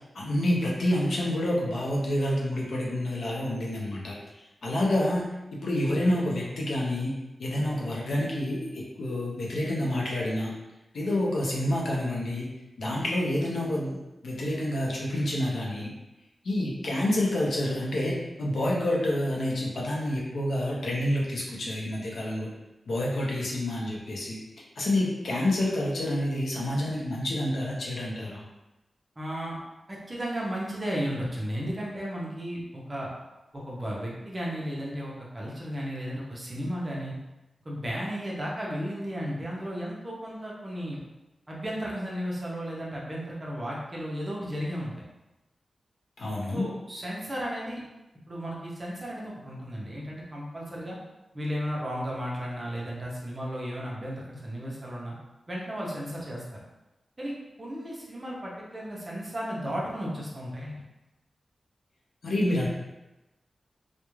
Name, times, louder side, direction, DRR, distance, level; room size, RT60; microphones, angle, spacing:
voice 1, 0.1-4.1 4.6-5.2 5.5-10.5 10.9-12.5 12.8-15.9 16.4-22.5 22.9-24.4 24.8-28.4 46.2-46.7 62.2-62.7, left 1 dB, 80° left, -4 dB, 0.6 m, -28 dB
voice 2, 29.2-29.6 29.9-33.1 33.5-37.1 37.6-41.0 41.5-45.0 46.5-47.8 48.3-51.0 51.3-55.1 55.5-56.4 57.2-57.3 57.6-60.8, equal, 25° right, -4 dB, 0.5 m, -34 dB
2.3 x 2.1 x 3.0 m, 1.0 s
wide cardioid pair, 170°, 0 cm